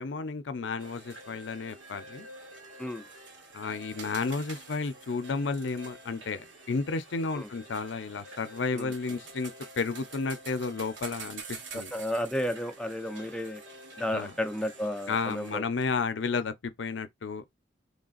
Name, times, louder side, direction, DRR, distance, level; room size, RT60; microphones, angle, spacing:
voice 1, 0.0-2.3 3.5-11.9 14.1-14.3 15.1-17.4, left 4 dB, 75° left, 0.6 m, -32 dB
sound 1, 0.8-15.6, right 3 dB, 75° right, 1.3 m, -47 dB
voice 2, 11.7-13.6 14.0-15.6, left 1 dB, 5° left, 0.5 m, -32 dB
3.9 x 3.3 x 2.5 m
head